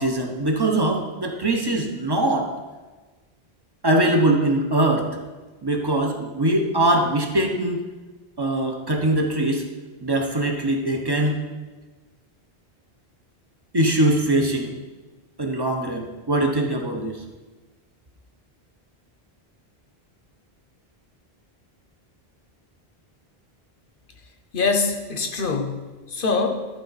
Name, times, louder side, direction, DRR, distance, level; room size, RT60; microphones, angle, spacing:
voice 1, 0.0-2.5 3.8-5.1 5.6-7.8 8.4-9.6 10.0-11.4 13.7-14.7 15.4-17.2, right 1 dB, 25° right, 2 dB, 0.8 m, -22 dB
voice 2, 24.5-26.7, left 4 dB, 60° left, 5 dB, 1.0 m, -24 dB
11.5 x 4.6 x 4.0 m, 1.3 s
omnidirectional pair, 1.0 m